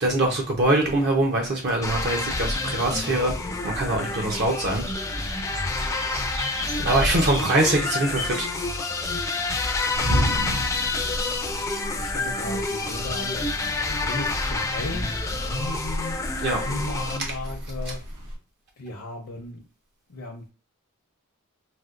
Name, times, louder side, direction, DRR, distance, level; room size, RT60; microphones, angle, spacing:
voice 1, 0.0-3.3 3.6-4.8 6.8-8.5 16.4-16.6, right 1 dB, 50° right, 0.5 m, -23 dB
sound 1, 1.8-17.2, left 3 dB, 15° left, 0.3 m, -28 dB
sound 2, 2.5-11.4, right 1 dB, 65° right, 1.1 m, -40 dB
sound 3, 9.9-18.4, equal, 85° right, 1.3 m, -33 dB
voice 2, 11.9-16.2 16.6-18.0 18.8-19.6 20.1-20.5, left 2 dB, 70° left, 0.6 m, -35 dB
4.2 x 2.1 x 2.4 m
head